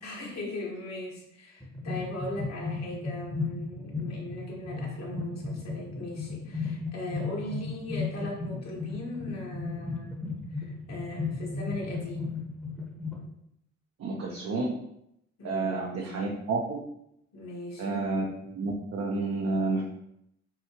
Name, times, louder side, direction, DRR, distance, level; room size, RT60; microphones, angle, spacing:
voice 1, 0.0-10.1 10.5-12.4 15.4-16.3 17.3-18.1, left 1 dB, 60° left, -2 dB, 1.5 m, -39 dB
sound 1, 1.6-13.2, left 4 dB, 5° left, 0.9 m, -35 dB
voice 2, 14.0-14.8 15.4-16.8 17.8-19.8, right 3 dB, 55° right, -2 dB, 0.7 m, -30 dB
5.7 x 2.4 x 2.9 m, 0.78 s
cardioid pair, 90°, 30 cm